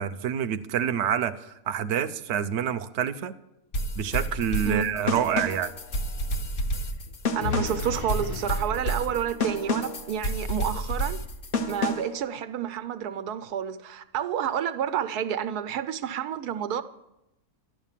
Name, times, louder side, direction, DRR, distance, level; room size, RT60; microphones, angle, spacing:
voice 1, 0.0-3.4 4.0-5.7, right 9 dB, 60° right, 0.9 m, -27 dB
sound 1, 3.7-12.2, left 1 dB, 40° left, 1.0 m, -30 dB
sound 2, 4.0-12.1, left 4 dB, 70° left, 1.2 m, -39 dB
voice 2, 7.3-11.2 11.7-16.8, right 9 dB, 90° right, 1.3 m, -29 dB
12.0 x 12.0 x 7.4 m
omnidirectional pair, 1.6 m